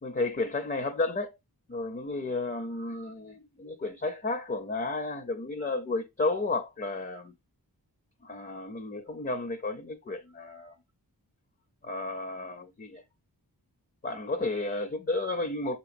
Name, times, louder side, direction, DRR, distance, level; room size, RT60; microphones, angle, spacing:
voice 1, 0.0-1.3 1.7-7.3 8.2-10.8 11.8-13.0 14.0-15.8, left 2 dB, 25° left, 0.6 m, -32 dB
6.4 x 3.0 x 2.5 m
wide cardioid pair, 55°, 39 cm